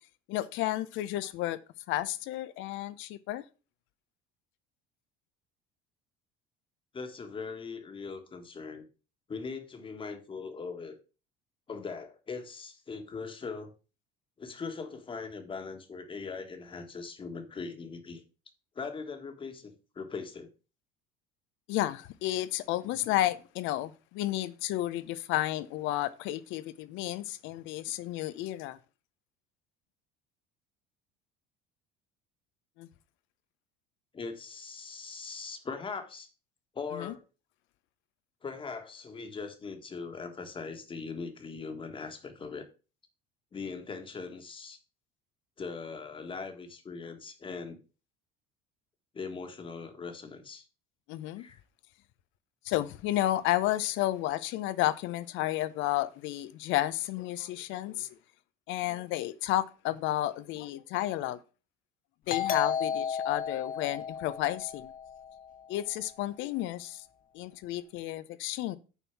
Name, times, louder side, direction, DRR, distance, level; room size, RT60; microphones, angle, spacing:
voice 1, 0.3-1.6 1.9-3.4 21.7-28.8 32.8-32.9 36.9-37.1 51.1-51.5 52.6-58.1 58.7-61.4 62.3-64.9 65.7-67.0 67.3-68.8, left 14 dB, 70° left, 0.7 m, -32 dB
voice 2, 6.9-8.8 9.3-11.0 11.7-13.7 14.4-18.2 18.7-20.5 34.1-36.3 36.7-37.2 38.4-42.7 43.5-44.8 45.6-47.8 49.1-50.6 51.4-51.6, left 4 dB, 25° left, 1.5 m, -40 dB
Doorbell, 62.3-65.6, left 7 dB, 45° left, 1.0 m, -33 dB
6.8 x 4.4 x 6.0 m
cardioid pair, 125°, 21 cm